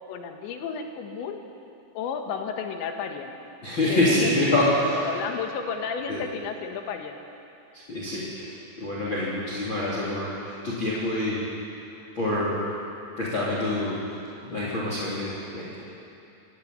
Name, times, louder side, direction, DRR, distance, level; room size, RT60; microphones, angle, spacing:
voice 1, 0.1-1.4 2.0-3.3 3.8-4.6 4.9-7.2 13.4-13.6, left 6 dB, 75° left, 4 dB, 3.7 m, -33 dB
voice 2, 3.6-5.0 6.1-6.2 7.7-11.4 12.2-12.6 13.2-14.0 14.4-15.7, left 1 dB, 30° left, -6 dB, 3.5 m, -26 dB
25.5 x 13.5 x 9.6 m, 2.7 s
omnidirectional pair, 5.3 m